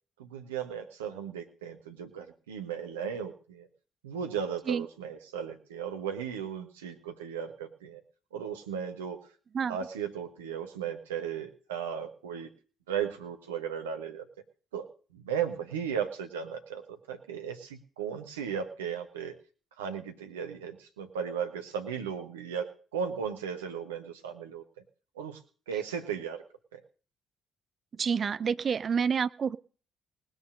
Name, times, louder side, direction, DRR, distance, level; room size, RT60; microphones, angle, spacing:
voice 1, 0.2-3.7 4.0-8.0 8.3-9.2 9.7-12.5 12.9-14.3 14.7-14.9 15.1-19.3 19.8-24.6 25.1-25.4 25.7-26.4 26.7-26.8, right 7 dB, 80° right, 5 dB, 1.4 m, -36 dB
voice 2, 28.0-29.6, right 6 dB, 45° right, 17 dB, 0.6 m, -28 dB
19.5 x 6.5 x 6.4 m, 0.40 s
figure-of-eight pair, 45°, 0 cm